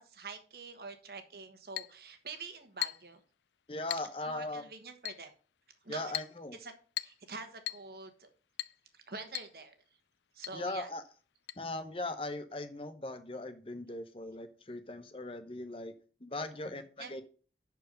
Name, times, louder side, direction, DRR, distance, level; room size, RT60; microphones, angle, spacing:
voice 1, 0.0-3.2 4.3-5.3 5.8-6.1 6.5-6.7 7.0-8.3 8.9-9.7 10.3-10.9 17.0-17.1, right 4 dB, 60° right, 8 dB, 1.3 m, -46 dB
Chink clink, 1.8-2.0 2.8-3.1 3.9-4.1 5.1-5.3 6.1-6.4 7.0-7.2 7.7-7.9 8.6-8.8 9.3-9.6 9.8-9.9 10.4-10.6 11.5-11.6, left 16 dB, 85° left, 0.4 m, -38 dB
voice 2, 3.7-4.6 5.9-6.6 10.5-11.0 11.6-15.9 16.2-17.2, left 2 dB, 30° left, 10 dB, 0.8 m, -39 dB
11.0 x 4.6 x 5.1 m, 0.38 s
head